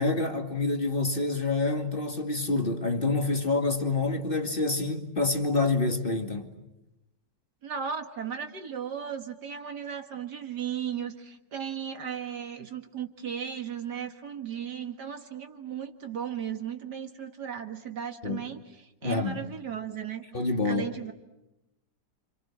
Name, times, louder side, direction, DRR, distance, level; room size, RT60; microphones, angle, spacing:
voice 1, 0.0-6.5 18.2-18.4 19.0-19.4 20.3-20.9, left 3 dB, 30° left, 2.4 m, -27 dB
voice 2, 7.6-20.2 20.6-21.1, right 8 dB, 60° right, 2.2 m, -36 dB
29.0 x 27.5 x 7.4 m
omnidirectional pair, 2.0 m